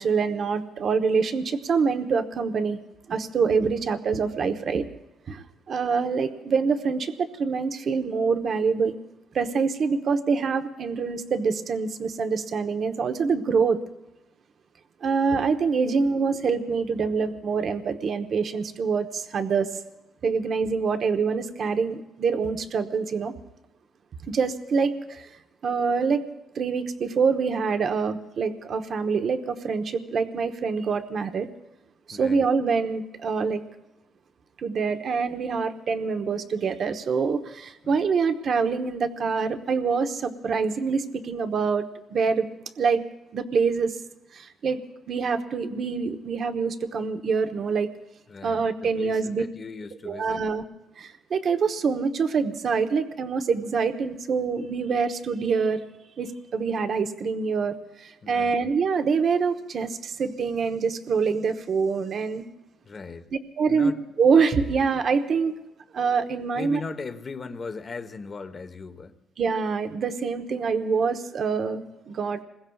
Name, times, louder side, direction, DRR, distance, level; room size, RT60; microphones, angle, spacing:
voice 1, 0.0-2.8 3.1-4.9 5.3-9.0 9.3-13.8 15.0-19.7 20.2-23.3 24.3-25.3 25.6-26.2 26.5-31.5 32.1-33.6 34.6-42.5 42.8-43.0 43.3-44.0 44.3-44.8 45.1-47.9 48.4-49.4 50.0-50.6 51.0-55.8 56.2-62.4 63.6-63.9 64.2-65.6 65.9-66.8 69.4-72.4, right 5 dB, 55° right, 6 dB, 1.0 m, -25 dB
voice 2, 32.1-32.5 37.8-38.0 48.3-50.5 58.2-58.6 62.8-63.3 63.7-64.0 66.5-69.1, left 4 dB, 40° left, 9 dB, 1.1 m, -38 dB
27.0 x 21.5 x 2.4 m, 0.95 s
cardioid pair, 90°, 0 cm